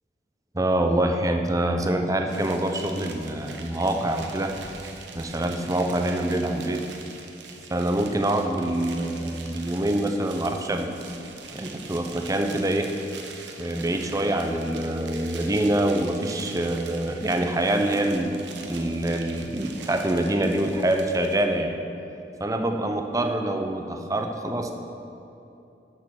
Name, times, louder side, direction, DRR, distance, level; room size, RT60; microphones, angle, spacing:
voice 1, 0.5-4.5 5.1-6.8 7.7-11.0 11.5-12.9 13.6-18.4 18.7-21.8 22.4-24.7, right 1 dB, 20° right, 5 dB, 0.7 m, -25 dB
sound 1, 2.3-21.4, right 4 dB, 90° right, 1.0 m, -43 dB
10.5 x 6.3 x 6.4 m, 2.9 s
head